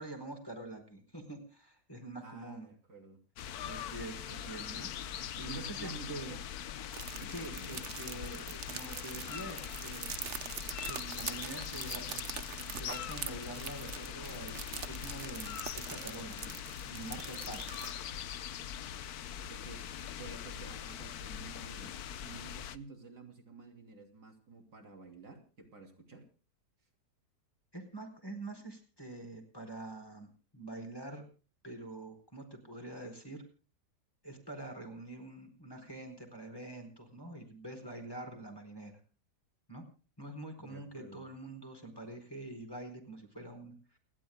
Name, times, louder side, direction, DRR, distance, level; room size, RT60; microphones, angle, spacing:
voice 1, 0.0-2.7 3.6-6.4 7.3-10.1 10.7-12.4 12.7-17.7 27.7-31.3 31.6-33.4 34.2-39.0 39.7-39.8 40.2-44.0, right 2 dB, 15° left, 4 dB, 4.5 m, -46 dB
voice 2, 2.2-3.2 5.3-6.4 7.1-7.8 19.5-22.0 22.2-26.2 40.6-41.3, right 3 dB, 70° right, 3 dB, 3.6 m, -51 dB
sound 1, 3.4-22.8, left 9 dB, 65° left, 1.3 m, -42 dB
sound 2, 6.9-17.9, right 7 dB, 50° right, 1.1 m, -44 dB
29.5 x 12.5 x 2.2 m, 0.37 s
omnidirectional pair, 1.8 m